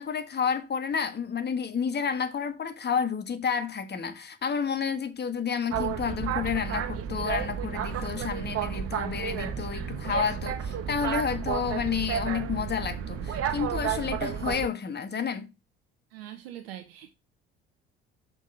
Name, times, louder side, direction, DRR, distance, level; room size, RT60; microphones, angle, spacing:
voice 1, 0.0-15.5, left 6 dB, 35° left, 1.6 m, -30 dB
Boat Water vehicle, 5.7-14.7, right 8 dB, 50° right, 1.1 m, -32 dB
voice 2, 16.1-17.1, right 12 dB, 75° right, 0.8 m, -42 dB
6.2 x 5.4 x 4.8 m
figure-of-eight pair, 55°, 30 cm